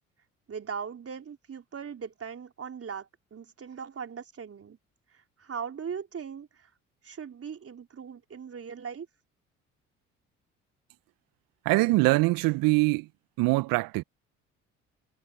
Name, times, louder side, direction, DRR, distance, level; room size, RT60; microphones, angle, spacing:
voice 1, 0.5-4.8 5.1-6.7 7.0-9.1, right 6 dB, 40° right, 4.3 m, -39 dB
voice 2, 11.6-13.1 13.4-14.0, right 22 dB, 65° right, 1.2 m, -23 dB
hypercardioid pair, 50°, 37 cm